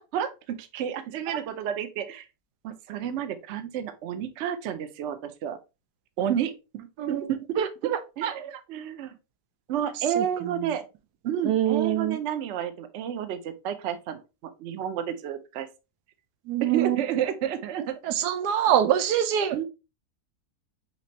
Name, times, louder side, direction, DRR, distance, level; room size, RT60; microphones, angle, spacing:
voice 1, 0.0-2.2 2.6-5.6 6.2-9.1 9.7-10.8 11.2-14.2 14.6-15.7 16.6-18.0 19.5-19.6, right 9 dB, 60° right, 0.8 m, -31 dB
voice 2, 7.6-8.3 10.2-10.3 11.4-12.2 16.5-17.0 18.0-19.6, right 10 dB, 90° right, 1.2 m, -25 dB
5.9 x 3.0 x 2.8 m
omnidirectional pair, 1.7 m